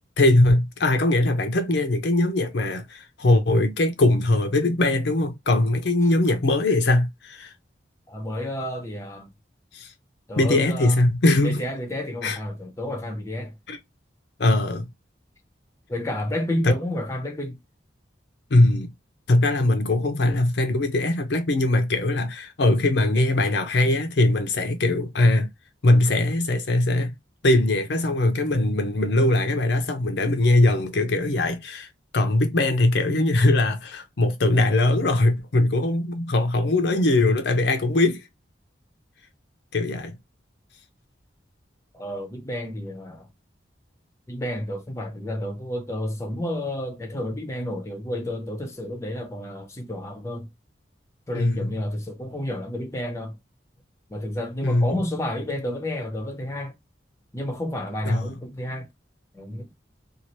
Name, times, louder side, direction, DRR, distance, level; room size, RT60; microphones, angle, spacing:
voice 1, 0.2-7.5 9.7-9.9 10.4-11.6 12.2-12.4 13.7-13.8 14.4-14.9 16.6-16.7 18.5-18.9 19.3-25.5 25.8-27.1 27.4-38.2 39.7-40.2 51.3-51.7 54.6-54.9 58.0-58.3, left 2 dB, 65° left, 0.6 m, -21 dB
voice 2, 8.1-9.3 10.3-11.0 11.4-13.5 15.9-17.6 41.9-43.3 44.3-50.5 51.3-53.4 54.1-56.7 57.3-58.9 59.3-59.7, left 1 dB, 15° left, 0.7 m, -30 dB
2.7 x 2.4 x 3.0 m
head